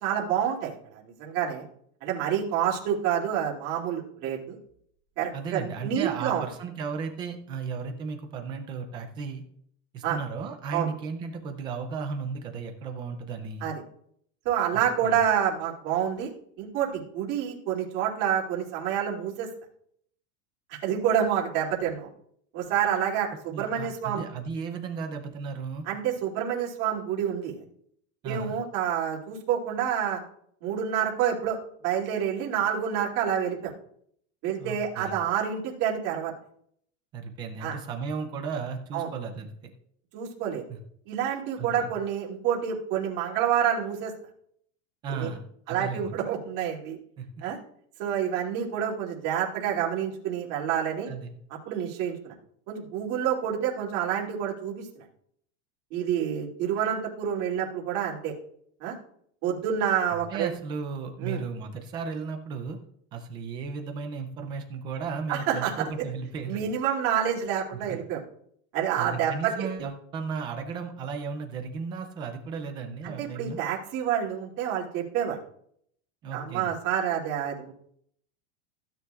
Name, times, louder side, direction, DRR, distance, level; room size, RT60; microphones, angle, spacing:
voice 1, 0.0-1.6 2.0-4.4 5.2-6.4 10.0-10.2 10.7-10.9 13.6-13.8 14.4-16.3 16.6-19.5 20.7-22.1 22.5-24.2 25.9-27.6 28.2-30.2 30.6-31.6 31.8-33.7 34.4-36.3 37.6-37.8 38.9-39.1 40.1-40.6 41.1-44.1 45.1-45.3 45.7-47.0 47.4-47.6 48.0-51.1 51.7-52.3 52.7-55.0 55.9-58.3 58.8-58.9 59.4-60.5 61.2-61.4 65.3-65.9 66.5-68.2 68.7-69.7 73.0-75.4 76.3-77.7, right 9 dB, 40° right, -3 dB, 2.5 m, -28 dB
voice 2, 5.3-9.4 9.9-13.7 14.7-15.2 23.5-25.8 28.2-28.5 34.6-35.2 37.1-39.7 40.7-40.8 41.6-41.9 45.0-46.1 47.2-47.4 51.1-51.3 60.1-62.8 63.1-66.6 67.7-68.0 69.0-73.6 76.2-76.7, right 5 dB, 15° right, 5 dB, 0.3 m, -35 dB
15.5 x 9.3 x 2.3 m, 0.67 s
supercardioid pair, 175°, 37 cm